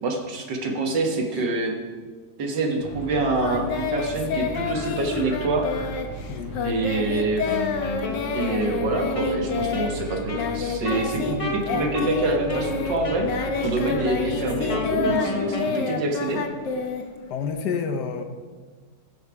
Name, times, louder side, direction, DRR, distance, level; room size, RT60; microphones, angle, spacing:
voice 1, 0.0-1.8 2.4-5.7 6.6-7.5 8.3-13.3 13.6-16.4, right 2 dB, 80° right, 2 dB, 2.0 m, -26 dB
sound 1, 2.8-15.1, right 1 dB, 45° right, 2.3 m, -38 dB
Singing, 3.4-11.4 11.6-17.5, left 5 dB, 90° left, 1.6 m, -29 dB
Wind instrument woodwind instrument, 7.4-15.8, left 2 dB, 25° left, 1.0 m, -32 dB
voice 2, 17.3-18.2, left 6 dB, 70° left, 7 dB, 1.4 m, -28 dB
16.0 x 5.6 x 4.8 m, 1.5 s
omnidirectional pair, 1.9 m